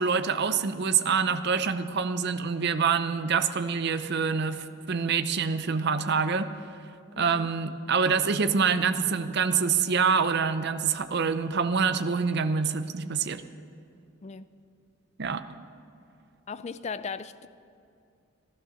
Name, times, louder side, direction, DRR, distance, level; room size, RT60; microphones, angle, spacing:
voice 1, 0.0-6.5 7.2-13.4 15.2-15.4, right 5 dB, 50° right, 0.6 m, -26 dB
voice 2, 16.5-17.5, left 5 dB, 30° left, 0.4 m, -37 dB
14.5 x 12.0 x 6.4 m
head